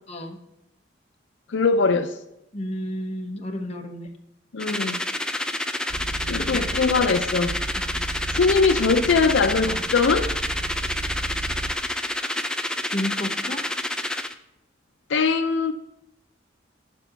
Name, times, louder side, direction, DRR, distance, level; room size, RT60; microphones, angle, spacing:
voice 1, 1.5-2.2 4.5-5.0 6.3-7.6 8.3-10.3 15.1-15.7, left 4 dB, 80° left, 0.5 m, -21 dB
voice 2, 2.5-4.1 6.5-6.6 7.7-8.0 12.9-13.6, left 1 dB, 35° left, 1.0 m, -31 dB
sound 1, 4.6-14.3, left 1 dB, 5° left, 0.4 m, -28 dB
sound 2, 5.9-11.8, right 2 dB, 65° right, 0.7 m, -33 dB
10.5 x 5.0 x 5.6 m
head